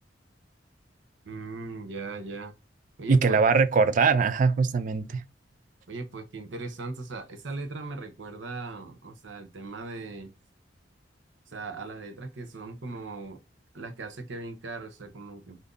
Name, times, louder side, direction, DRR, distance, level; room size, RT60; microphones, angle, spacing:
voice 1, 1.2-2.5 3.0-3.4 5.9-10.3 11.5-13.4 13.7-15.6, right 3 dB, 90° right, 0.7 m, -38 dB
voice 2, 3.1-5.2, right 5 dB, 45° right, 0.3 m, -22 dB
2.6 x 2.5 x 3.6 m
head